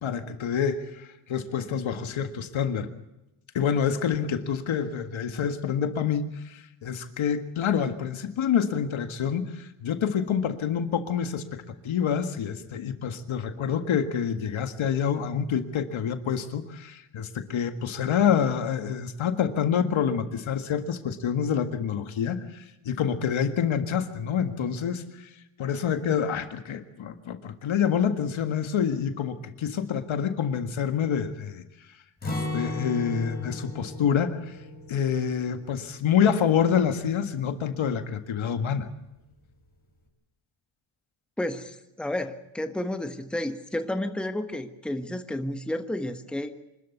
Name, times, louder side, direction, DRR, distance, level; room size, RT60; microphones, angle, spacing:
voice 1, 0.0-2.9 3.5-25.0 25.6-31.6 32.2-34.6 34.9-38.9, left 8 dB, 65° left, 8 dB, 1.9 m, -27 dB
Acoustic guitar, 32.2-38.1 38.4-38.6 39.1-39.6, left 1 dB, 20° left, 5.6 m, -37 dB
voice 2, 41.4-46.5, left 1 dB, ahead, 7 dB, 1.3 m, -31 dB
26.0 x 13.0 x 8.1 m, 0.92 s
cardioid pair, 120°, 50 cm